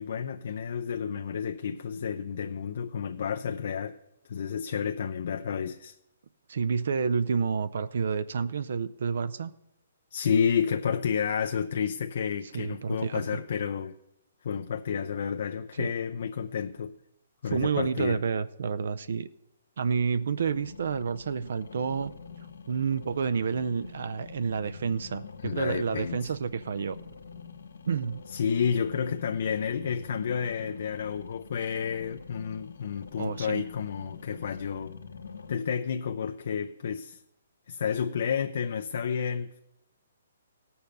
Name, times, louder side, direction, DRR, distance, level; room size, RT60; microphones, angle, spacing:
voice 1, 0.0-4.0 4.3-6.0 10.1-14.0 14.4-17.0 17.4-18.2 25.4-26.3 28.3-35.0 35.5-37.2 37.7-39.6, left 7 dB, 60° left, 0.5 m, -30 dB
voice 2, 6.5-9.5 12.5-13.2 15.8-15.9 17.5-19.3 19.8-22.1 22.7-27.0 27.9-28.2 33.2-33.6, right 6 dB, 70° right, 0.5 m, -29 dB
sound 1, 20.3-35.5, left 5 dB, 85° left, 1.1 m, -46 dB
17.0 x 6.9 x 5.4 m
hypercardioid pair, 150°, 0 cm